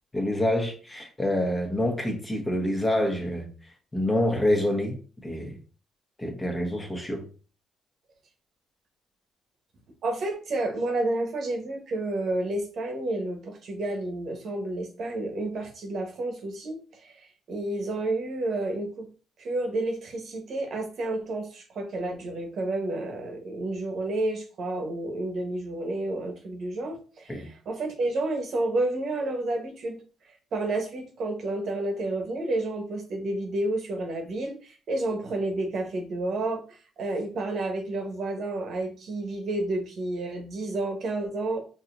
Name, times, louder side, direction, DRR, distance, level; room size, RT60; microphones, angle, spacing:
voice 1, 0.1-3.5 3.9-5.0 5.2-5.6 6.2-7.2 27.3-27.5, left 1 dB, 15° left, 1.1 m, -26 dB
voice 2, 10.0-19.1 19.4-30.0 30.5-41.6, right 2 dB, 65° right, 1.1 m, -30 dB
4.7 x 2.9 x 2.6 m
cardioid pair, 90°, 0 cm